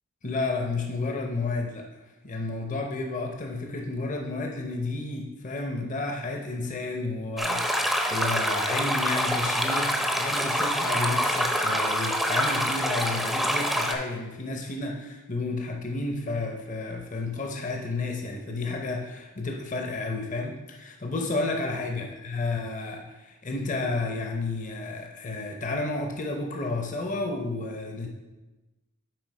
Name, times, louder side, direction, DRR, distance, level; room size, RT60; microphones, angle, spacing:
voice 1, 0.2-1.9 2.2-28.1, left 3 dB, 35° left, 2 dB, 0.8 m, -31 dB
sound 1, 7.4-13.9, equal, ahead, 0.6 m, -26 dB
7.7 x 4.7 x 4.7 m, 1.1 s
head